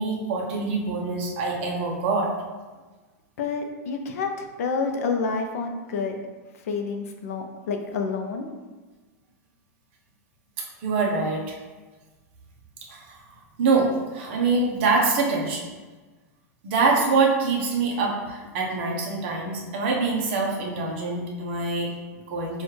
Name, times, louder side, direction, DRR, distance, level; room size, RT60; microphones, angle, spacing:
voice 1, 0.0-2.3 10.6-11.6 12.9-13.2 13.6-15.7 16.6-22.6, right 4 dB, 40° right, -1 dB, 0.8 m, -25 dB
voice 2, 3.4-6.2 6.5-8.5, left 4 dB, 65° left, 4 dB, 0.6 m, -29 dB
6.3 x 2.4 x 3.1 m, 1.3 s
supercardioid pair, 180°, 9 cm